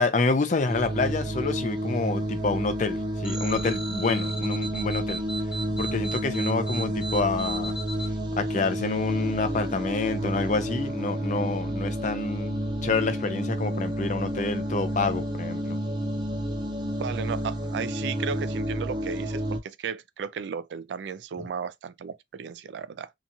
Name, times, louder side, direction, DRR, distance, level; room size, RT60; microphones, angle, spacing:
voice 1, 0.0-5.2 5.8-7.8 8.4-15.8, left 3 dB, 45° left, 0.5 m, -28 dB
sound 1, 0.7-19.6, equal, 25° right, 0.5 m, -30 dB
sound 2, 3.2-8.1, right 2 dB, 5° right, 0.9 m, -36 dB
voice 2, 17.0-23.1, right 6 dB, 85° right, 0.3 m, -35 dB
2.9 x 2.3 x 2.6 m
head